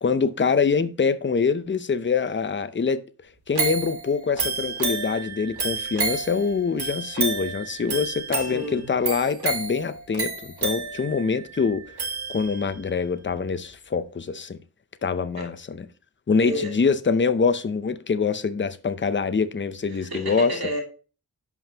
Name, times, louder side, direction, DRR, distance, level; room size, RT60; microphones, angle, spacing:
voice 1, 0.0-3.0 3.5-11.8 12.3-14.6 15.0-15.8 16.3-20.5, left 5 dB, 30° left, 0.6 m, -24 dB
sound 1, 3.6-12.8 13.3-13.4, right 4 dB, 85° right, 1.8 m, -30 dB
voice 2, 8.5-8.9 15.4-15.5 16.4-16.7 19.9-20.8, equal, 70° right, 2.7 m, -31 dB
11.0 x 5.4 x 2.9 m
wide cardioid pair, 80°, 38 cm